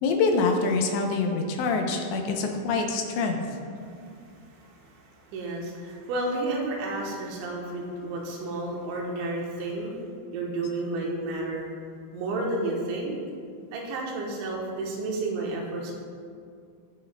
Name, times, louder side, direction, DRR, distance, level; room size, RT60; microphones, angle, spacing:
voice 1, 0.0-3.6, left 4 dB, 80° left, 3 dB, 2.8 m, -25 dB
voice 2, 4.0-10.0 10.3-11.6 12.1-13.1 13.7-15.9, right 2 dB, 80° right, -1 dB, 3.3 m, -31 dB
17.5 x 6.1 x 2.2 m, 2.3 s
omnidirectional pair, 5.4 m